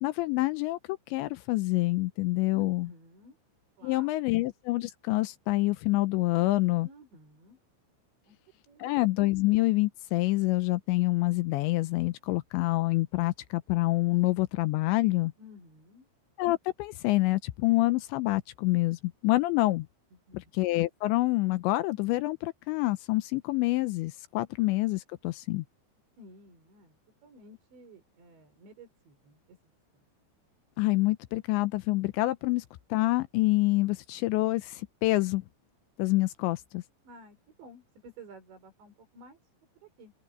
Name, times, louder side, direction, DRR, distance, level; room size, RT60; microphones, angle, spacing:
voice 1, 0.0-2.9 3.8-6.9 8.8-15.3 16.4-19.9 20.5-25.6 30.8-32.6 32.9-35.4 36.0-36.8, left 19 dB, 85° left, 2.7 m, -27 dB
voice 2, 2.5-3.4 3.8-4.4 6.8-7.6 8.2-8.4 8.7-8.9 15.4-16.1 20.1-20.5 26.2-29.6 29.9-30.0 37.0-40.1, right 1 dB, 65° right, 7.9 m, -53 dB
open air
omnidirectional pair, 5.6 m